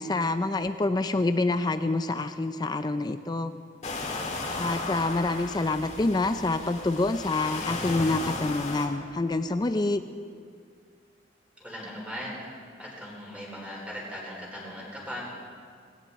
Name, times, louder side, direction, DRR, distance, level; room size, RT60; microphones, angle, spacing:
voice 1, 0.0-3.5 4.6-10.0, left 2 dB, 20° left, 10 dB, 0.4 m, -27 dB
sound 1, 3.8-8.9, left 2 dB, 40° left, 1.9 m, -35 dB
voice 2, 11.6-12.4 12.8-15.2, equal, 5° right, -4 dB, 4.3 m, -38 dB
19.0 x 17.0 x 4.2 m, 2.1 s
head